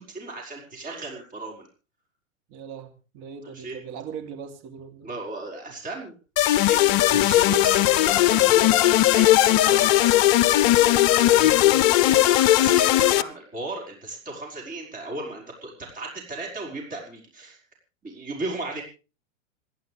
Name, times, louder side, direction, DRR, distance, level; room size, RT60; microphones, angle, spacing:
voice 1, 0.0-1.7 3.4-3.8 5.0-6.1 6.5-10.1 11.2-11.5 12.0-17.6 18.0-18.8, right 2 dB, 20° right, -1 dB, 5.5 m, -36 dB
voice 2, 2.5-5.1 11.3-11.8, right 7 dB, 45° right, 5 dB, 3.2 m, -40 dB
sound 1, 6.4-13.2, left 14 dB, 40° left, 0.7 m, -18 dB
27.5 x 11.5 x 3.5 m, 0.34 s
hypercardioid pair, 110°, 39 cm